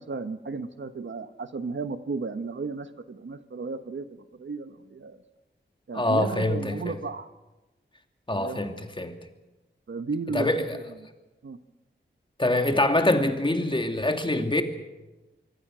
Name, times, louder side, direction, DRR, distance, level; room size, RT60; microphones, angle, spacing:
voice 1, 0.0-5.2 5.9-7.3 8.3-8.6 9.9-10.8 11.4-11.6, right 4 dB, 75° right, 1.3 m, -34 dB
voice 2, 5.9-7.0 8.3-9.2 10.3-10.8 12.4-14.6, left 1 dB, 25° left, 2.5 m, -25 dB
25.0 x 24.0 x 6.3 m
wide cardioid pair, 70°, 20 cm